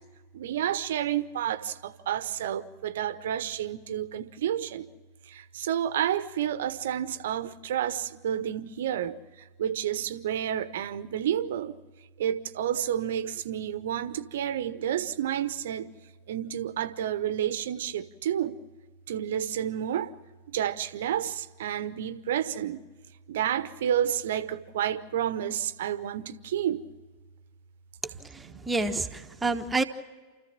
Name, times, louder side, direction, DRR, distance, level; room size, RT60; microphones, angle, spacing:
voice 1, 0.3-4.9 5.3-9.2 9.6-11.8 12.2-15.9 16.3-18.6 19.1-20.1 20.5-22.8 23.3-26.8 28.4-28.7, right 10 dB, 60° right, 14 dB, 1.0 m, -30 dB
voice 2, 28.0-29.8, right 3 dB, 10° right, 7 dB, 1.3 m, -29 dB
29.0 x 14.5 x 7.4 m, 1.4 s
figure-of-eight pair, 90°, 0 cm